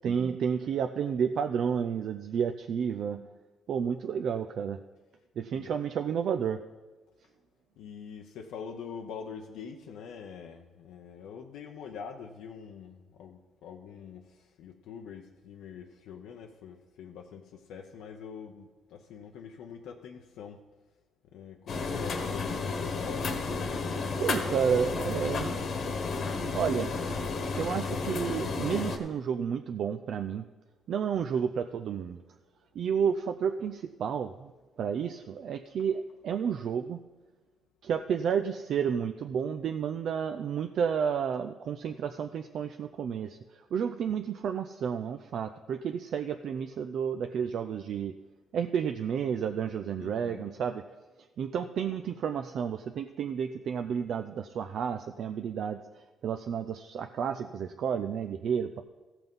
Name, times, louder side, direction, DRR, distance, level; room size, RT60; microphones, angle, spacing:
voice 1, 0.0-3.3 3.7-4.8 5.4-6.6 24.2-25.5 26.5-30.4 30.9-32.2 32.7-34.5 34.8-37.0 37.8-48.1 48.5-50.8 51.4-58.8, right 7 dB, 65° right, 7 dB, 0.4 m, -31 dB
voice 2, 7.8-20.6 21.3-24.1 50.0-50.5, left 7 dB, 90° left, 2 dB, 0.7 m, -45 dB
sound 1, 21.7-29.0, left 4 dB, 60° left, 1.2 m, -32 dB
15.0 x 5.9 x 5.4 m, 1.2 s
cardioid pair, 90°, 0 cm